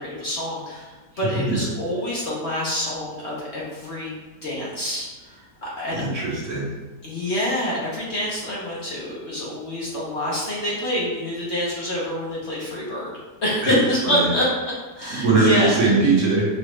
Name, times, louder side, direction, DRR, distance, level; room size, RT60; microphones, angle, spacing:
voice 1, 0.0-4.1 4.4-6.0 7.0-13.1 13.4-14.5 14.9-15.7, left 1 dB, 45° left, -6 dB, 1.1 m, -26 dB
voice 2, 1.1-1.6 5.9-6.7 13.6-13.7 14.0-14.3 15.2-16.5, right 3 dB, 65° right, -6 dB, 1.8 m, -20 dB
6.0 x 2.7 x 3.2 m, 1.2 s
omnidirectional pair, 1.8 m